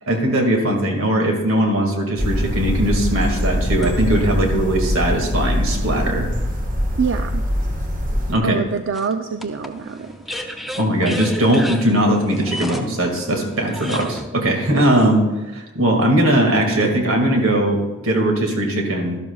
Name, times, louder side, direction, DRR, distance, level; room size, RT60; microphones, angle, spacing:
voice 1, 0.1-6.3 8.3-8.6 10.8-15.2 15.5-19.2, right 1 dB, 80° right, 2 dB, 2.0 m, -19 dB
sound 1, 2.2-8.4, equal, 40° right, 1.5 m, -22 dB
sound 2, 2.6-4.3 5.0-5.1 8.9-14.3, equal, ahead, 0.5 m, -33 dB
voice 2, 7.0-7.4 8.4-10.1 14.7-14.9, right 5 dB, 60° right, 7 dB, 0.4 m, -25 dB
12.5 x 12.0 x 2.3 m, 1.2 s
head